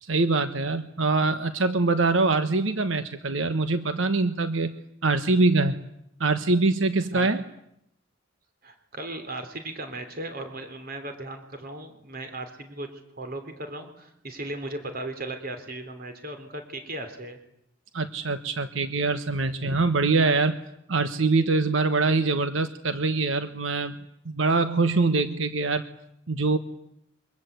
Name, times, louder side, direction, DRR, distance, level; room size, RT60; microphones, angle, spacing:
voice 1, 0.0-4.8 5.0-5.8 6.2-7.4 17.9-20.6 20.9-24.0 24.2-25.8 26.3-26.6, right 3 dB, 70° right, 10 dB, 1.2 m, -24 dB
voice 2, 8.6-17.4, right 2 dB, 50° right, 7 dB, 3.5 m, -37 dB
27.5 x 24.5 x 8.3 m, 0.76 s
head